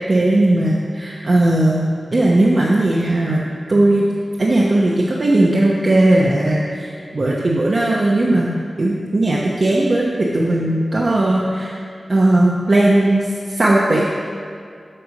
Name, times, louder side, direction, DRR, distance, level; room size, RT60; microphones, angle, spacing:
voice 1, 0.1-1.8 2.1-3.4 3.7-4.0 4.4-8.5 8.8-11.7 12.1-13.3 13.6-14.1, right 1 dB, 50° right, -4 dB, 0.9 m, -17 dB
7.7 x 6.1 x 5.2 m, 2.3 s
wide cardioid pair, 65°, 0 cm